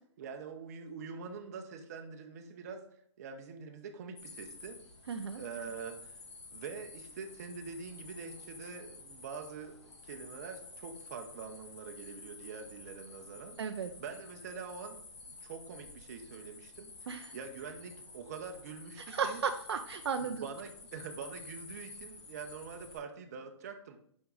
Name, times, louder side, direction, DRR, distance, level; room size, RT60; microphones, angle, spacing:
voice 1, 0.2-2.8 3.2-4.8 5.3-6.1 6.5-13.6 14.0-15.0 15.3-19.4 20.2-24.0, right 5 dB, 35° right, 5 dB, 0.7 m, -45 dB
sound 1, 4.2-23.0, left 3 dB, 65° left, 1.7 m, -51 dB
voice 2, 5.1-5.4 13.6-13.9 17.1-17.3 19.1-20.5, right 6 dB, 60° right, 7 dB, 0.5 m, -34 dB
5.7 x 5.3 x 3.8 m, 0.65 s
hypercardioid pair, 165°, 16 cm